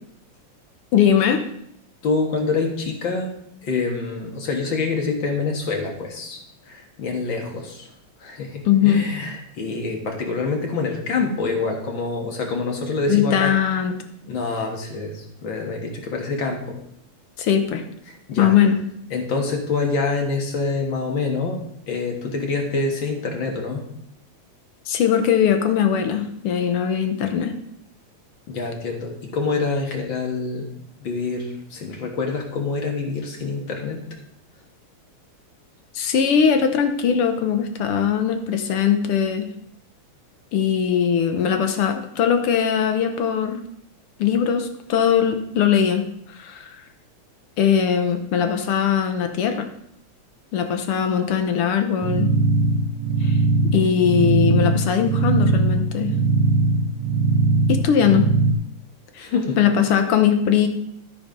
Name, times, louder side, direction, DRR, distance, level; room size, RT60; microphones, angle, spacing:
voice 1, 0.9-1.4 8.6-9.1 13.1-13.9 17.4-17.8 18.4-18.8 24.9-27.5 35.9-39.5 40.5-43.6 44.2-46.8 47.6-49.7 50.5-52.3 53.2-53.4 53.7-56.1 57.7-58.3 59.1-59.3 59.6-60.7, left 8 dB, 70° left, 7 dB, 1.4 m, -20 dB
voice 2, 2.0-3.3 3.6-6.4 6.7-7.9 8.2-13.5 14.3-16.8 18.3-18.5 19.1-21.6 21.9-23.9 28.5-30.7 31.0-34.0 59.2-59.6, left 4 dB, 45° left, 2 dB, 2.0 m, -26 dB
sound 1, 52.0-58.5, right 3 dB, 75° right, 1.5 m, -20 dB
13.0 x 5.4 x 5.2 m, 0.72 s
omnidirectional pair, 3.4 m